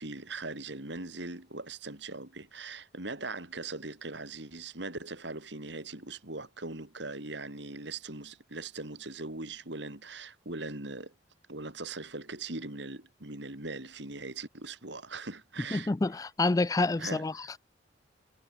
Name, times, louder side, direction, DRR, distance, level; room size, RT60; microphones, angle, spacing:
voice 1, 0.0-11.1 11.5-15.9 17.0-17.5, right 3 dB, 65° right, 3.2 m, -40 dB
voice 2, 15.7-17.6, left 3 dB, 20° left, 0.3 m, -28 dB
head